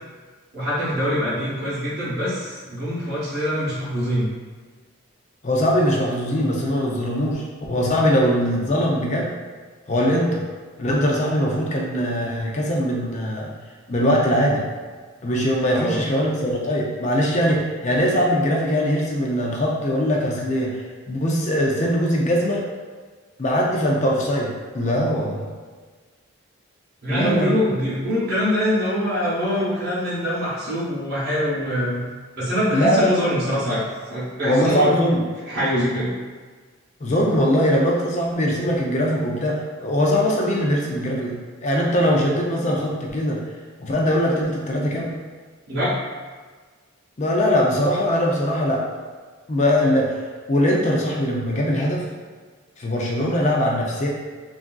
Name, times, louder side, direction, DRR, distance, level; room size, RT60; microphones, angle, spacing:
voice 1, 0.5-4.3 15.7-16.0 27.0-32.0 32.4-33.8 34.1-34.9 35.5-36.1 45.7-46.0, equal, 50° right, -10 dB, 0.9 m, -24 dB
voice 2, 5.4-9.3 9.9-10.4 10.8-13.5 13.9-14.6 15.2-20.8 21.1-22.6 23.4-25.5 27.1-27.6 32.7-33.1 34.4-35.2 37.0-41.3 41.6-43.4 43.8-45.1 47.2-48.8 49.5-50.2 50.5-52.0 52.8-54.1, equal, 35° left, -2 dB, 0.4 m, -21 dB
3.4 x 2.5 x 2.3 m, 1.5 s
head